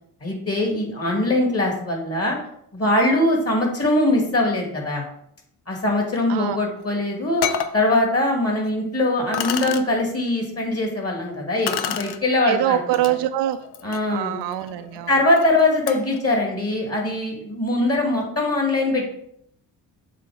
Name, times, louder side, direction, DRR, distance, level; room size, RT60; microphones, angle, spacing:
voice 1, 0.2-2.4 2.7-5.0 5.7-7.4 7.7-12.8 13.0-13.1 13.8-14.4 15.1-19.1, left 2 dB, 30° left, 1 dB, 2.4 m, -22 dB
sound 1, 6.8-6.9 7.4-7.8 8.6-8.7 9.3-9.8 11.7-12.2 12.9-13.1 13.6-16.2, left 8 dB, 55° left, 0.7 m, -29 dB
voice 2, 12.5-13.6 14.1-15.1, right 13 dB, 65° right, 10 dB, 0.5 m, -24 dB
7.5 x 2.5 x 5.0 m, 0.71 s
hypercardioid pair, 40°, 46 cm